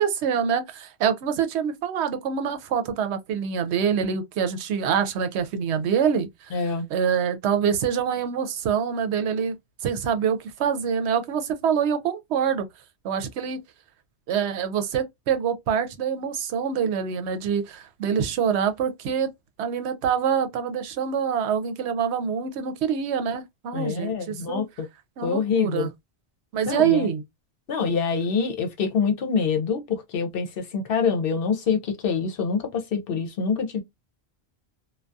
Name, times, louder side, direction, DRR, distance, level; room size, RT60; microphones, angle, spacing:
voice 1, 0.0-9.6 9.8-12.6 13.0-13.6 14.3-19.3 19.6-24.6 25.2-25.9 26.5-27.2, right 7 dB, 85° right, 0.8 m, -25 dB
voice 2, 6.5-6.9 23.7-24.9 25.2-25.9 26.7-27.1 27.7-33.8, left 5 dB, 65° left, 0.8 m, -25 dB
2.3 x 2.2 x 2.5 m
omnidirectional pair, 1.1 m